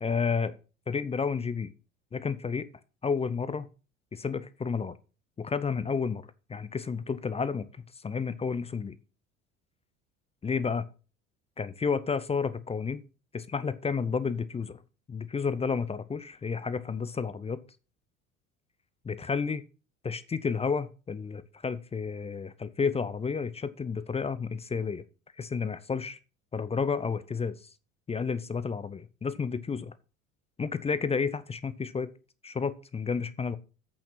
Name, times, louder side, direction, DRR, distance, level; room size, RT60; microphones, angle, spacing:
voice 1, 0.0-0.6 0.9-1.7 2.1-2.7 3.0-3.7 4.1-5.0 5.4-6.2 6.5-7.7 8.0-9.0 10.4-10.8 11.6-13.0 13.3-14.8 15.1-17.6 19.1-19.6 20.0-25.0 25.4-26.2 26.5-27.6 28.1-29.9 30.6-32.1 32.4-33.6, left 5 dB, 15° left, 0.6 m, -31 dB
8.4 x 6.2 x 5.8 m
figure-of-eight pair, 65°, 42 cm